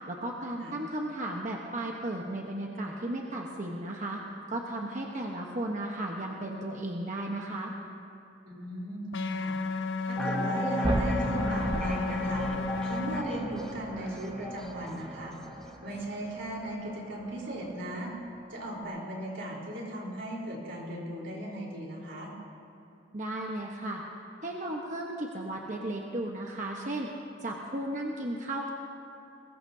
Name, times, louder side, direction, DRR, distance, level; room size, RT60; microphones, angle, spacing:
voice 1, 0.1-4.2 4.5-7.7 23.1-24.0 24.4-27.1 27.4-28.7, right 1 dB, 40° right, -1 dB, 1.1 m, -35 dB
voice 2, 8.4-9.6 10.0-15.3 15.8-18.1 18.5-22.3, right 1 dB, 85° right, -3 dB, 4.0 m, -37 dB
sound 1, 9.1-13.2, left 4 dB, 85° left, 0.9 m, -33 dB
sound 2, 10.2-15.8 16.0-16.1, right 1 dB, 5° left, 1.1 m, -37 dB
sound 3, 10.8-18.8, right 1 dB, 25° right, 0.9 m, -37 dB
22.0 x 20.5 x 2.8 m, 2.8 s
head